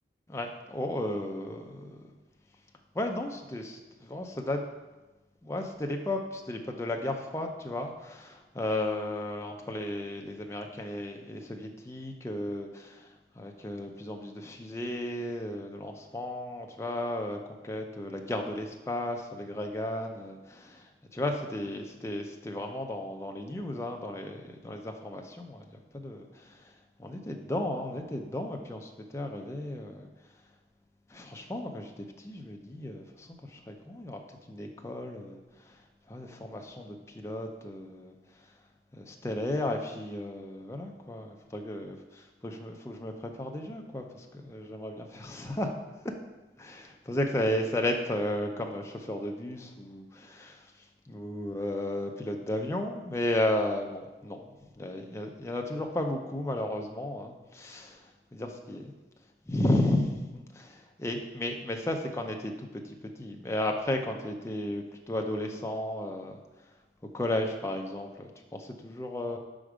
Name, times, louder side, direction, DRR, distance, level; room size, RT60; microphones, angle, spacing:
voice 1, 0.3-2.1 2.9-4.6 5.4-17.4 17.6-26.7 27.0-30.1 31.1-34.2 34.5-35.8 36.1-38.1 38.9-45.7 46.0-46.1 46.6-50.7 51.1-54.5 54.8-58.9 59.5-66.3 67.1-69.4, left 1 dB, 15° left, 2 dB, 0.4 m, -34 dB
5.1 x 4.4 x 4.9 m, 1.1 s
head